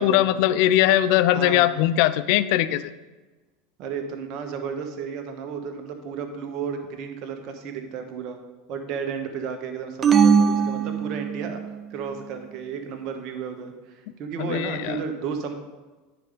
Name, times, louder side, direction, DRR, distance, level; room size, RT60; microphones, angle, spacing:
voice 1, 0.0-2.9 14.5-15.0, left 13 dB, 55° left, 14 dB, 0.4 m, -20 dB
voice 2, 1.3-1.7 3.8-8.4 8.7-11.6 11.9-15.5, right 6 dB, 50° right, 5 dB, 1.3 m, -33 dB
sound 1, 10.0-11.7, right 6 dB, 25° right, 0.6 m, -20 dB
9.7 x 5.3 x 5.0 m, 1.2 s
figure-of-eight pair, 80°, 0 cm